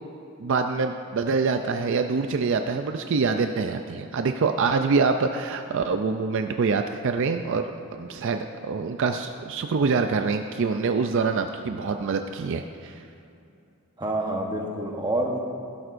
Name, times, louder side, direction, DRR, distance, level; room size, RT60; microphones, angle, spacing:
voice 1, 0.4-7.6 7.9-13.0, right 4 dB, 60° right, 6 dB, 0.4 m, -25 dB
voice 2, 14.0-15.4, right 1 dB, 20° right, 1 dB, 1.0 m, -27 dB
15.5 x 12.5 x 2.6 m, 2.6 s
head